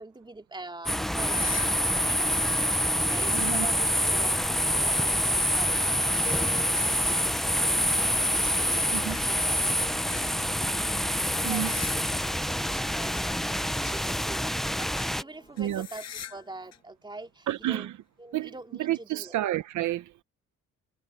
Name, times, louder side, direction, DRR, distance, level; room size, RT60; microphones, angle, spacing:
voice 1, 0.0-1.6 1.9-2.4 3.0-10.7 11.2-11.7 11.9-17.9 18.2-19.4, right 2 dB, 15° right, 3.0 m, -45 dB
field in september, 0.9-15.2, equal, ahead, 0.6 m, -26 dB
sound 1, 1.1-2.7 3.0-12.4 12.7-14.6 14.9-15.2 15.6-16.5 16.7-16.8 17.6-17.7 18.9-19.0, left 9 dB, 60° left, 6.2 m, -46 dB
voice 2, 3.3-3.7 8.4-8.7 8.9-9.2 10.6-10.7 11.4-11.7 13.6-13.8 15.6-15.9 17.5-18.0 18.3-18.5 18.8-20.2, right 13 dB, 75° right, 0.9 m, -30 dB
Harp, 6.2-16.8, left 3 dB, 20° left, 1.9 m, -48 dB
cardioid pair, 90°, 30 cm